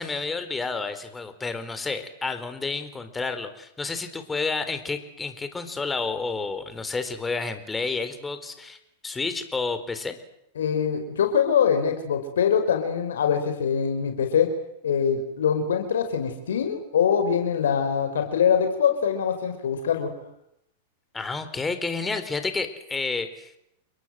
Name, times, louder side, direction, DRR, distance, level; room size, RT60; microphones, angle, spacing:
voice 1, 0.0-8.8 9.0-10.2 21.1-23.6, left 4 dB, 15° left, 9 dB, 4.3 m, -30 dB
voice 2, 10.6-14.5 14.8-20.1, left 7 dB, 80° left, 6 dB, 5.0 m, -23 dB
29.5 x 22.5 x 7.8 m, 0.79 s
hypercardioid pair, 110°, 0 cm